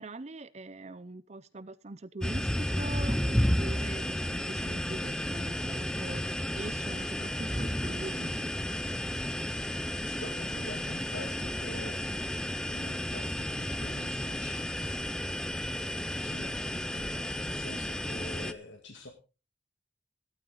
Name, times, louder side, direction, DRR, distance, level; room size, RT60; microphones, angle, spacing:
voice 1, 0.0-6.3 6.6-8.5, right 2 dB, 35° right, 0.6 m, -43 dB
sound 1, 2.2-18.5, equal, 5° left, 0.6 m, -32 dB
voice 2, 10.1-12.1 12.7-14.8 16.1-19.1, left 2 dB, 75° left, 2.1 m, -46 dB
15.0 x 12.5 x 3.9 m
head